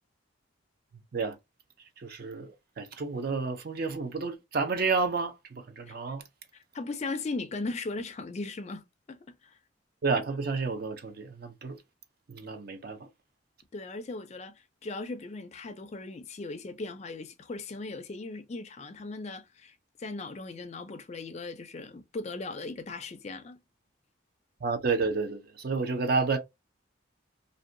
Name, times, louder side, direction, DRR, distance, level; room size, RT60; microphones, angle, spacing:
voice 1, 2.0-5.3 5.8-6.2 10.0-11.8 12.3-13.0 24.6-26.4, right 4 dB, 50° right, 0.4 m, -30 dB
voice 2, 6.5-8.8 9.1-9.6 13.7-23.6, left 3 dB, 35° left, 0.3 m, -38 dB
2.6 x 2.2 x 2.5 m
head